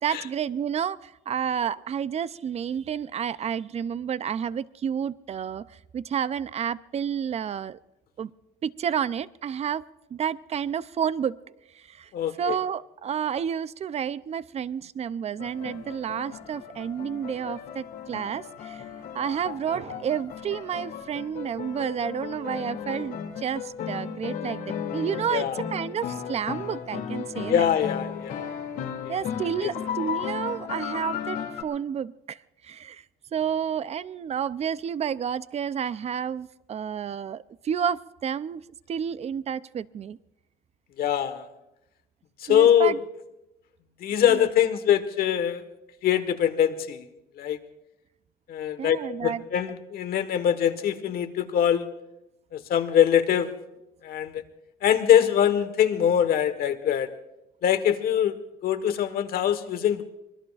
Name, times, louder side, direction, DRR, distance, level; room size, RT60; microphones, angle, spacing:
voice 1, 0.0-7.8 8.2-8.3 8.6-9.8 10.1-11.4 11.7-12.1 12.4-18.9 19.1-27.7 29.1-32.4 32.6-33.0 33.3-40.2 42.5-43.0 44.3-44.5 48.8-49.4, right 8 dB, 40° right, 16 dB, 0.6 m, -30 dB
voice 2, 12.1-12.6 25.3-25.6 27.4-28.5 29.0-29.2 29.6-29.7 41.0-41.5 42.4-42.9 44.0-45.6 46.0-47.1 47.4-47.6 48.5-51.9 52.5-53.5 54.0-54.4 54.8-57.1 57.6-58.4 58.6-60.0, left 9 dB, 65° left, 10 dB, 1.4 m, -23 dB
sound 1, 15.4-31.6, left 7 dB, 85° left, 2.6 m, -35 dB
25.0 x 20.0 x 2.5 m, 0.90 s
cardioid pair, 110°, 17 cm